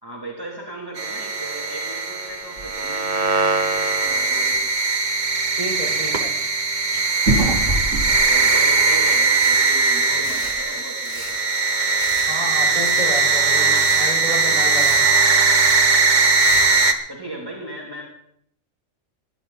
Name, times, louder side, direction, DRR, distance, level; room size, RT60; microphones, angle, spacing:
voice 1, 0.0-4.7 7.7-11.4 16.7-18.0, right 1 dB, 20° right, -3 dB, 3.0 m, -37 dB
sound 1, 1.0-16.9, right 3 dB, 40° right, 1.2 m, -19 dB
sound 2, 2.6-2.8 3.2-3.6 4.0-4.1 4.5-4.6 6.9-9.4 9.7-9.8 10.2-10.6, right 1 dB, 75° right, 3.4 m, -25 dB
voice 2, 5.5-6.3 12.3-15.0, equal, 30° left, -3 dB, 6.4 m, -30 dB
sound 3, 8.2-8.3 8.4-8.8 9.3-9.6 10.0-10.5 11.0-11.4 12.0-12.3 12.7-13.3 13.6-14.0 14.5-15.0 15.4-15.8 16.3-16.7, left 1 dB, 70° left, 6.6 m, -38 dB
21.0 x 12.0 x 4.2 m, 0.68 s
omnidirectional pair, 1.3 m